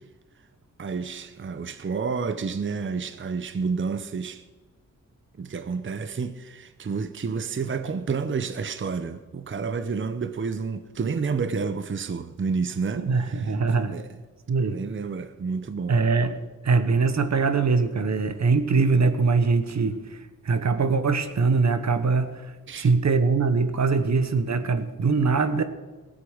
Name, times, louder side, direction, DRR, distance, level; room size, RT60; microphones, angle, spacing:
voice 1, 0.8-4.4 5.4-13.5 13.9-14.1 14.6-16.0 22.7-22.9, right 5 dB, 35° right, 0.8 m, -30 dB
voice 2, 13.0-14.0 14.5-14.8 15.9-16.4 16.6-25.6, right 4 dB, 55° right, 1.3 m, -22 dB
18.5 x 8.1 x 6.4 m
wide cardioid pair, 115°, 34 cm